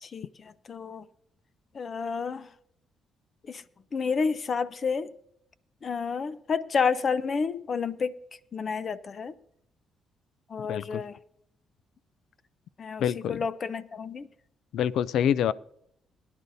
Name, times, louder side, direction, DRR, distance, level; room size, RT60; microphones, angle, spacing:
voice 1, 0.0-1.0 1.7-2.5 3.5-3.6 3.9-5.1 5.8-8.2 8.5-9.4 10.5-11.2 12.8-14.3, left 5 dB, 45° left, 0.7 m, -30 dB
voice 2, 10.6-11.0 13.0-13.4 14.7-15.5, left 9 dB, 75° left, 0.4 m, -26 dB
22.0 x 10.5 x 2.7 m
cardioid pair, 90°, 0 cm